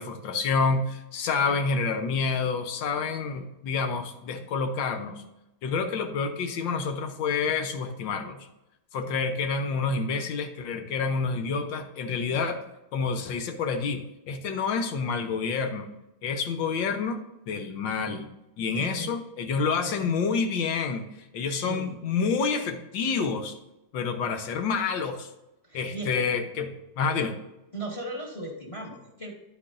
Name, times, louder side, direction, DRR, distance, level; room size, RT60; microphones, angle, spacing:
voice 1, 0.0-5.2 5.6-8.5 8.9-12.6 12.9-15.9 16.2-18.3 18.6-21.1 21.3-23.5 23.9-25.3 25.7-27.4, left 5 dB, 80° left, 6 dB, 1.6 m, -28 dB
voice 2, 18.7-19.1 19.8-20.1 21.4-21.9 25.6-26.2 27.7-29.3, right 1 dB, 20° left, 1 dB, 1.2 m, -37 dB
10.0 x 8.7 x 2.6 m, 0.91 s
omnidirectional pair, 2.1 m